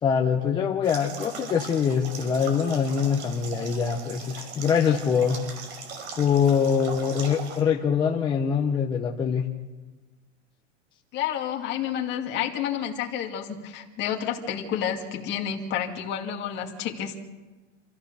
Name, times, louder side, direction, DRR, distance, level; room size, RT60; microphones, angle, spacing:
voice 1, 0.0-5.4 6.2-9.5, left 7 dB, 10° left, 1 dB, 0.8 m, -24 dB
sound 1, 0.8-7.6, right 5 dB, 60° right, 5.3 m, -39 dB
voice 2, 11.1-17.2, left 9 dB, 30° left, 2 dB, 2.2 m, -30 dB
27.5 x 14.5 x 6.7 m, 1.3 s
supercardioid pair, 160°, 37 cm